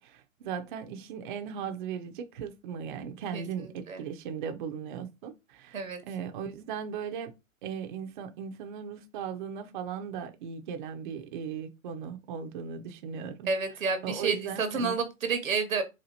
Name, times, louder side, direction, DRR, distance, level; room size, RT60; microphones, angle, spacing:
voice 1, 0.0-7.3 7.6-13.5 14.0-15.0, right 7 dB, 40° right, 0.5 m, -37 dB
voice 2, 3.3-4.0 5.7-6.0 13.5-15.8, right 4 dB, 90° right, 1.0 m, -30 dB
4.2 x 2.4 x 2.6 m
hypercardioid pair, 130°, 39 cm